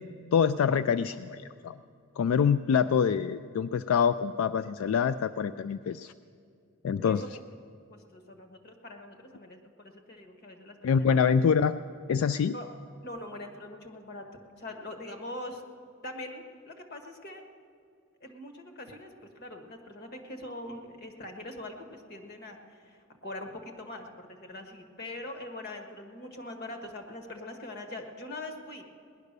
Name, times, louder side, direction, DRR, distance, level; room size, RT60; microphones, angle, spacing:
voice 1, 0.3-1.8 2.2-6.1 6.8-7.2 10.8-11.8 12.1-12.5, left 7 dB, 75° left, 12 dB, 0.3 m, -25 dB
voice 2, 7.9-11.1 12.5-12.7 13.0-14.3 14.5-15.6 16.0-17.4 18.2-28.8, left 1 dB, 50° left, 4 dB, 1.5 m, -42 dB
18.5 x 10.5 x 6.6 m, 2.4 s
head